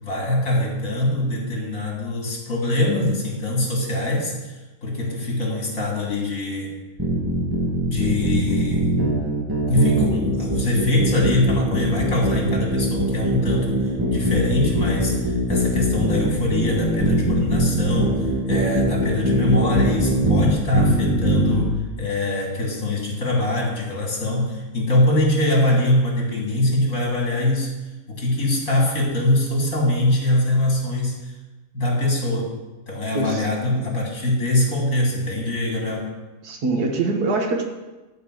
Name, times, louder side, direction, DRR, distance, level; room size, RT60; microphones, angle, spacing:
voice 1, 0.0-6.7 7.9-9.0 9.7-27.8 28.1-31.3 31.7-32.5 32.9-36.2, left 1 dB, 60° left, -2 dB, 3.2 m, -23 dB
sound 1, 7.0-21.7, right 1 dB, 15° right, 1.8 m, -21 dB
voice 2, 36.4-37.6, right 3 dB, 80° right, 2 dB, 2.0 m, -23 dB
13.0 x 4.6 x 7.6 m, 1.1 s
omnidirectional pair, 1.6 m